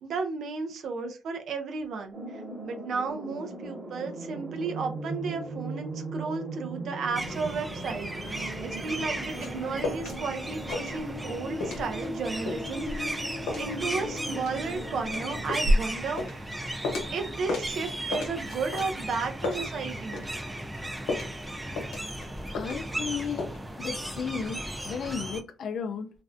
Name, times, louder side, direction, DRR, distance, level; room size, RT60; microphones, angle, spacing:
voice 1, 0.0-2.2 2.6-12.9 13.1-13.3 13.6-16.5 17.1-20.2, right 4 dB, 65° right, 0.4 m, -33 dB
sound 1, 2.1-15.4, right 1 dB, 50° right, 1.2 m, -38 dB
sound 2, 7.2-25.4, right 1 dB, 10° right, 0.5 m, -36 dB
sound 3, 8.9-10.2 10.5-11.3 11.6-17.2 17.5-20.3 20.6-23.1 23.4-23.6, left 1 dB, 90° left, 0.8 m, -32 dB
voice 2, 22.5-23.5 23.8-26.1, left 6 dB, 60° left, 0.3 m, -34 dB
2.4 x 2.0 x 2.5 m
cardioid pair, 90°, 0 cm